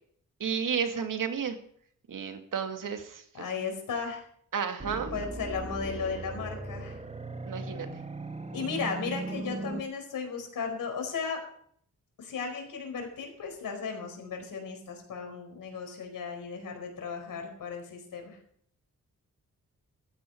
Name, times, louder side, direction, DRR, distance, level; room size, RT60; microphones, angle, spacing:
voice 1, 0.4-1.6 2.1-3.2 4.5-5.2 7.5-7.9, right 7 dB, 75° right, 6 dB, 2.2 m, -32 dB
voice 2, 3.3-4.2 4.9-7.0 8.5-11.4 12.2-18.4, left 5 dB, 85° left, 3 dB, 4.7 m, -35 dB
sound 1, 4.8-9.8, right 2 dB, 20° right, 1.5 m, -38 dB
15.5 x 13.5 x 4.6 m, 0.64 s
cardioid pair, 65°, 32 cm